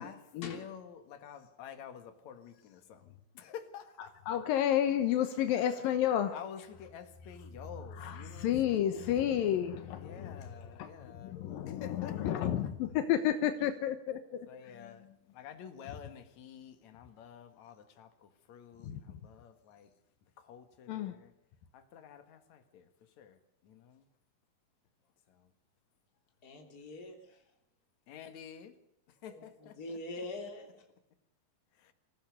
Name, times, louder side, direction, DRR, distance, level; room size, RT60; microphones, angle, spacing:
voice 1, 0.0-4.4 5.5-5.9 6.3-9.3 9.9-11.4 11.7-12.7 14.5-15.1 15.3-19.9 20.4-21.3 21.7-24.0 25.3-25.5 28.1-28.8 29.1-29.8 31.7-31.9, left 8 dB, 60° left, 8 dB, 2.9 m, -50 dB
voice 2, 4.3-6.4 8.0-10.4 10.8-10.9 11.2-14.5 18.8-19.0 20.9-21.1, left 10 dB, 80° left, 8 dB, 2.8 m, -31 dB
voice 3, 26.4-27.4 29.2-30.8, left 2 dB, 25° left, 3 dB, 3.4 m, -44 dB
25.5 x 15.5 x 6.7 m, 0.82 s
omnidirectional pair, 4.1 m